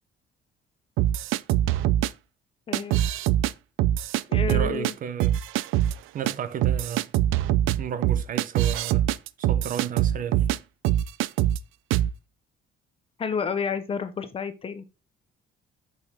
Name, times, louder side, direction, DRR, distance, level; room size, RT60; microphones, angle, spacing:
sound 1, 1.0-2.1 2.7-3.5 3.8-4.9 5.2-5.9 6.3-6.4 6.6-10.6 10.8-11.6 11.9-12.1, right 12 dB, 80° right, 0.4 m, -23 dB
voice 1, 2.7-3.0 4.3-4.9 13.2-14.8, left 6 dB, 25° left, 0.8 m, -30 dB
voice 2, 4.5-5.4 6.1-7.1 7.8-9.1 9.4-10.5, right 8 dB, 40° right, 0.6 m, -33 dB
6.2 x 5.7 x 3.5 m
cardioid pair, 170°, 20 cm